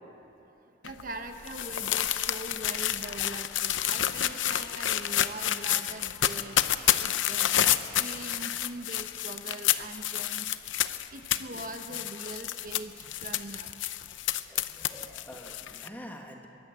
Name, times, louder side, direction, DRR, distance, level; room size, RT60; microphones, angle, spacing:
sound 1, 0.8-15.9, left 11 dB, 80° left, 0.7 m, -29 dB
voice 1, 0.8-6.6 7.0-10.5 11.1-13.7, right 2 dB, 45° right, 6 dB, 1.1 m, -42 dB
voice 2, 14.5-16.5, equal, 10° left, 2 dB, 1.8 m, -46 dB
22.0 x 16.5 x 8.1 m, 2.8 s
head